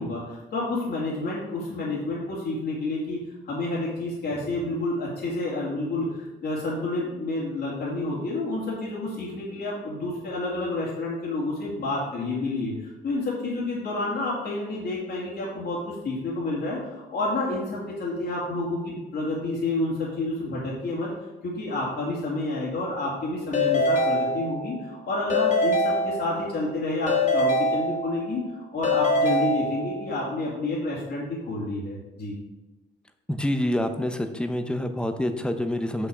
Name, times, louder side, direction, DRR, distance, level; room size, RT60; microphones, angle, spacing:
voice 1, 0.0-3.2 3.4-21.1 21.4-32.4, left 2 dB, 55° left, -6 dB, 2.1 m, -29 dB
Keyboard (musical) / Ringtone, 23.5-24.9 25.3-26.6 27.1-28.4 28.8-30.2, left 1 dB, 40° left, 2.0 m, -24 dB
voice 2, 33.3-36.1, left 1 dB, 5° left, 7 dB, 0.7 m, -27 dB
6.1 x 5.7 x 4.9 m, 1.1 s
cardioid pair, 90°, 20 cm